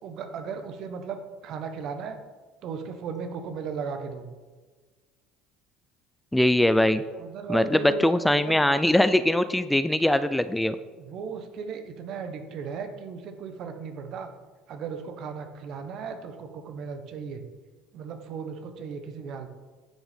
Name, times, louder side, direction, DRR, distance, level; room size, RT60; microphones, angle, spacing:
voice 1, 0.0-2.2 2.6-4.3 7.2-8.5 11.0-14.3 14.7-17.4 17.9-19.5, right 6 dB, 60° right, 7 dB, 1.3 m, -36 dB
voice 2, 6.3-7.0 7.5-10.8, left 1 dB, 5° left, 12 dB, 0.5 m, -22 dB
10.5 x 6.1 x 5.3 m, 1.4 s
hypercardioid pair, 70°, 0 cm